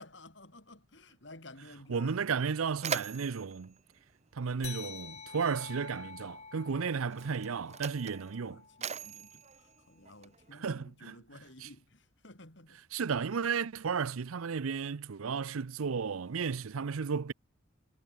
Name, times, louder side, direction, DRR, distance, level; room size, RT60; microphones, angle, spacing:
voice 1, 0.0-2.2 8.4-12.8, left 2 dB, 55° left, 4.4 m, -53 dB
Mechanisms, 1.9-2.0 2.3-5.0 6.0-6.2 7.0-10.6, right 6 dB, 30° right, 0.9 m, -42 dB
voice 2, 1.9-3.7 4.3-8.6 10.5-11.2 11.6-11.7 12.9-17.3, right 5 dB, 85° right, 0.6 m, -33 dB
sound 1, 4.6-9.5, left 6 dB, 30° left, 5.0 m, -48 dB
head